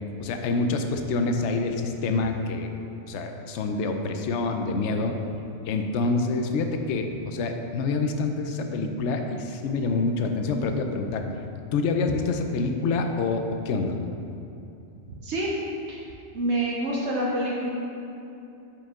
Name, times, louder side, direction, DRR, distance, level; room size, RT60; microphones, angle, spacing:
voice 1, 0.2-2.7 3.1-5.2 5.6-11.3 11.7-13.9, left 3 dB, 70° left, 5 dB, 0.9 m, -26 dB
voice 2, 16.3-17.7, right 1 dB, 65° right, -4 dB, 1.1 m, -27 dB
7.2 x 5.1 x 3.6 m, 2.8 s
omnidirectional pair, 1.3 m